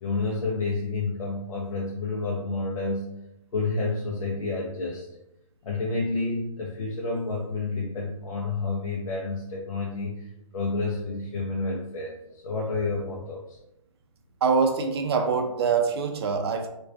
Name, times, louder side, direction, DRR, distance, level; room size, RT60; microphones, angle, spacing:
voice 1, 0.0-3.1 3.5-5.1 5.6-10.3 10.5-13.6, left 3 dB, 75° left, -2 dB, 0.5 m, -29 dB
voice 2, 14.4-16.7, right 5 dB, 50° right, 5 dB, 0.4 m, -24 dB
2.3 x 2.2 x 2.4 m, 0.86 s
hypercardioid pair, 140°, 18 cm